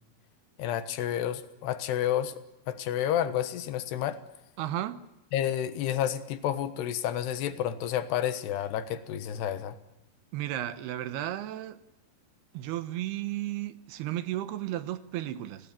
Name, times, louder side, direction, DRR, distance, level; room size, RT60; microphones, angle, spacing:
voice 1, 0.6-2.3 2.7-4.2 5.3-9.8, left 10 dB, 85° left, 3.4 m, -30 dB
voice 2, 4.6-5.0 10.3-11.8 12.5-15.7, right 13 dB, 75° right, 3.0 m, -34 dB
29.5 x 19.0 x 8.8 m
omnidirectional pair, 4.7 m